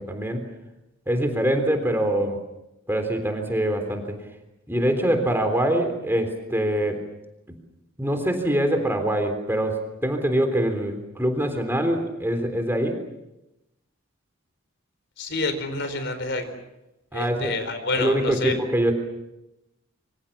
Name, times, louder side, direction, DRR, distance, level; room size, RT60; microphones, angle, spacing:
voice 1, 0.1-0.4 1.1-2.4 2.9-4.2 4.7-7.0 8.0-13.0 17.1-17.5 18.0-18.9, right 1 dB, 10° right, 6 dB, 3.6 m, -24 dB
voice 2, 15.2-16.4 17.1-18.6, left 3 dB, 55° left, 9 dB, 4.4 m, -28 dB
27.0 x 25.0 x 7.3 m, 0.94 s
head